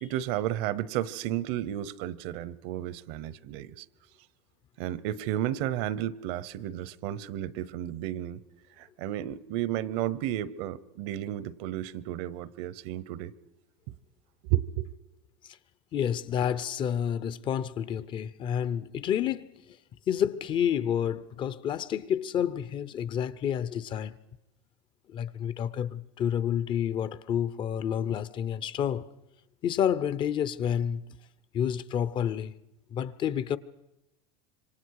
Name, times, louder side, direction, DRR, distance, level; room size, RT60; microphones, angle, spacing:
voice 1, 0.0-3.8 4.8-8.4 8.8-13.3 14.5-14.9, right 13 dB, 65° right, 0.9 m, -32 dB
voice 2, 15.9-19.8 20.1-24.2 25.1-29.1 29.6-31.0 31.5-32.5 32.9-33.6, left 9 dB, 35° left, 0.7 m, -29 dB
26.5 x 24.5 x 4.8 m
supercardioid pair, 135°, 14 cm